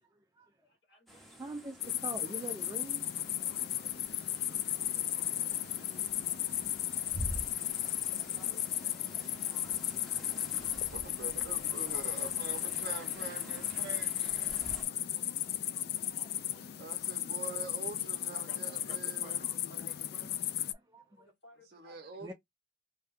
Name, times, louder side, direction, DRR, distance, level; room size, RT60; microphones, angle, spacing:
voice 1, 0.1-0.5 1.4-3.1 6.5-6.6 9.3-9.5 10.5-10.9 13.5-13.6 14.9-15.1 15.5-16.7 17.0-17.1 20.7-21.3 22.2-22.3, right 2 dB, 20° right, 0.4 m, -46 dB
voice 2, 0.6-1.5 2.3-2.4 4.3-5.6 6.9-8.1 8.6-8.7 9.5-9.6 11.6-12.1 14.2-14.3 14.6-15.9 16.1-17.0 17.9-20.6 21.1-22.0, left 1 dB, 75° left, 1.4 m, -58 dB
sound 1, 1.1-14.8, equal, ahead, 0.7 m, -48 dB
sound 2, 1.8-20.7, left 12 dB, 60° left, 0.3 m, -35 dB
voice 3, 10.9-14.8 16.8-19.4 21.6-22.3, right 4 dB, 60° right, 0.6 m, -45 dB
2.7 x 2.2 x 3.5 m
head